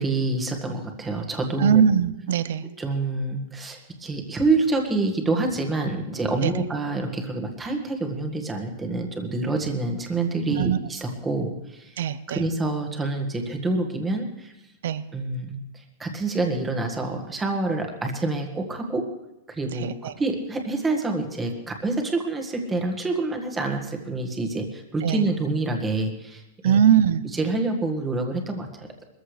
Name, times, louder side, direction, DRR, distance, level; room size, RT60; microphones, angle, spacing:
voice 1, 0.0-1.8 2.8-14.5 15.1-19.1 19.5-26.8 27.3-29.1, right 2 dB, 10° right, 2 dB, 1.7 m, -27 dB
voice 2, 1.6-2.6 6.4-6.5 10.6-10.8 12.0-12.4 14.8-15.0 19.8-20.1 25.0-25.2 26.6-27.2, right 8 dB, 70° right, 15 dB, 0.7 m, -21 dB
21.0 x 14.5 x 3.4 m, 0.95 s
supercardioid pair, 150°, 0 cm